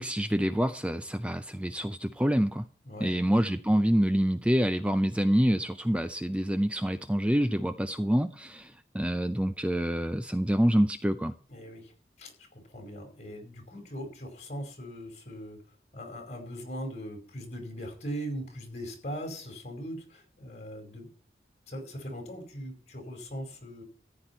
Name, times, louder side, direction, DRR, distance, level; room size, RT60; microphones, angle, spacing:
voice 1, 0.0-2.6 3.0-11.3, equal, 5° right, 10 dB, 0.5 m, -27 dB
voice 2, 2.8-3.2 11.5-11.9 12.2-15.6 15.9-21.1 21.7-23.8, equal, 40° left, 3 dB, 5.0 m, -40 dB
14.5 x 9.8 x 4.4 m, 0.42 s
head